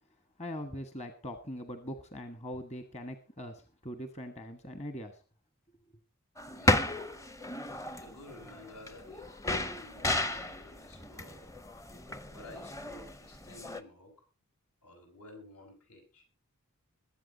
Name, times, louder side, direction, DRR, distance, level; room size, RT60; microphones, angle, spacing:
voice 1, 0.4-5.1, equal, 30° left, 8 dB, 1.3 m, -41 dB
sound 1, 6.4-13.8, left 1 dB, 15° left, 0.7 m, -34 dB
voice 2, 6.5-7.0 8.0-11.5 12.3-14.1 14.8-16.2, left 1 dB, 80° left, 2 dB, 6.5 m, -52 dB
21.5 x 8.3 x 4.0 m, 0.32 s
head